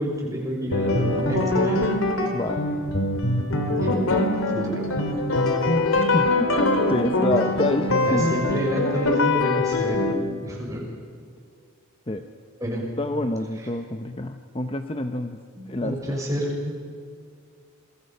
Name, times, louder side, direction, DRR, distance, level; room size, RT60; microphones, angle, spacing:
voice 1, 0.0-1.9 3.8-4.0 4.4-5.0 8.0-10.0 10.4-10.9 12.6-12.8 15.6-16.7, equal, 15° right, -2 dB, 6.2 m, -29 dB
sound 1, 0.7-10.1, left 2 dB, 75° left, 2.8 m, -23 dB
voice 2, 6.1-6.5 6.9-8.3 12.1-12.2 13.0-15.4 15.7-16.2, left 2 dB, 25° left, 7 dB, 0.8 m, -27 dB
28.0 x 22.5 x 5.6 m, 2.1 s
head